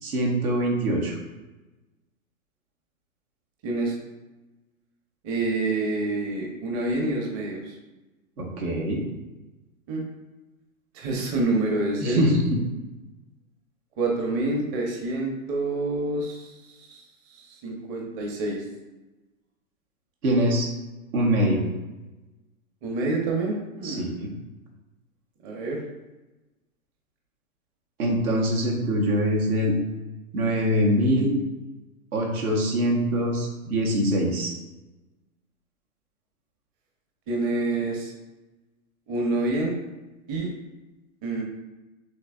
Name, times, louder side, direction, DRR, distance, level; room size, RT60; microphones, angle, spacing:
voice 1, 0.0-1.1 8.4-9.0 12.0-12.6 20.2-20.7 21.1-21.6 23.8-24.3 28.0-29.7 30.3-31.3 32.1-34.5, equal, 85° right, -2 dB, 1.4 m, -23 dB
voice 2, 3.6-3.9 5.2-7.7 9.9-10.0 10.9-12.3 14.0-18.6 22.8-24.3 25.4-25.8 37.3-38.1 39.1-39.8 40.3-40.5 41.2-41.4, right 2 dB, 35° right, 0 dB, 0.9 m, -27 dB
6.4 x 2.8 x 2.4 m, 1.1 s
hypercardioid pair, 130°, 43 cm